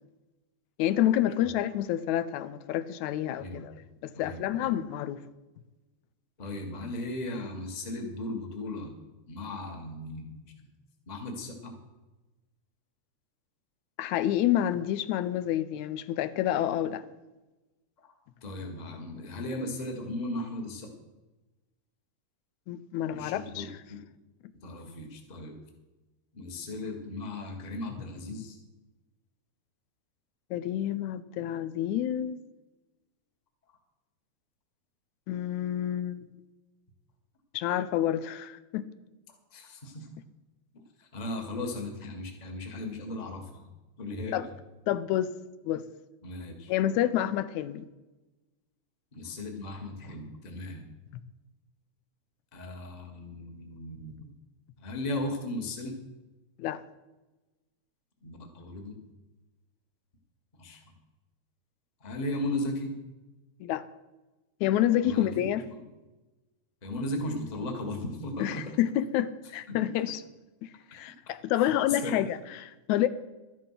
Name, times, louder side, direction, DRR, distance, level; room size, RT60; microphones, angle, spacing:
voice 1, 0.8-3.7 4.0-5.2 14.0-17.0 22.7-23.7 30.5-32.4 35.3-36.3 37.5-38.9 44.3-44.4 44.9-45.3 45.7-45.8 46.7-47.9 56.6-56.8 63.6-63.8 64.6-65.6 68.4-70.2 70.9-73.1, left 12 dB, 85° left, 2.0 m, -28 dB
voice 2, 3.4-3.7 4.1-4.7 6.4-8.9 9.3-10.7 11.1-11.8 18.0-18.1 18.4-20.9 23.1-24.0 24.6-25.5 26.3-28.6 39.5-40.1 40.7-43.7 44.0-44.5 46.2-46.7 49.1-50.9 52.5-54.3 54.8-56.0 58.2-59.0 60.6-60.8 62.0-62.9 65.0-65.8 66.8-68.7 69.7-70.1 70.9-71.0 71.6-72.2, left 1 dB, 20° left, 1.2 m, -37 dB
13.0 x 11.0 x 5.7 m
omnidirectional pair, 3.3 m